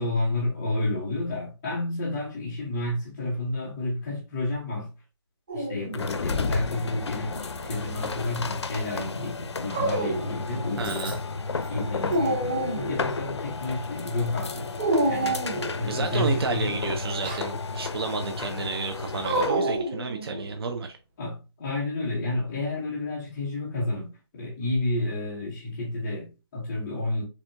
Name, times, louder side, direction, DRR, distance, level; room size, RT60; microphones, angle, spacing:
voice 1, 0.0-4.9 5.5-7.4 7.6-11.2 11.7-14.7 15.0-15.4 15.7-16.8 21.2-27.2, left 2 dB, 5° left, 0.3 m, -30 dB
Dog, 5.5-6.3 7.4-8.3 9.7-10.4 10.8-11.3 11.7-13.1 14.8-15.8 17.0-17.5 19.2-20.5, right 2 dB, 20° right, 0.9 m, -28 dB
sound 1, 5.9-19.7, left 4 dB, 70° left, 0.5 m, -33 dB
voice 2, 10.8-11.2 15.9-21.0, right 4 dB, 60° right, 0.6 m, -31 dB
4.2 x 3.5 x 2.5 m
hypercardioid pair, 170°, 15 cm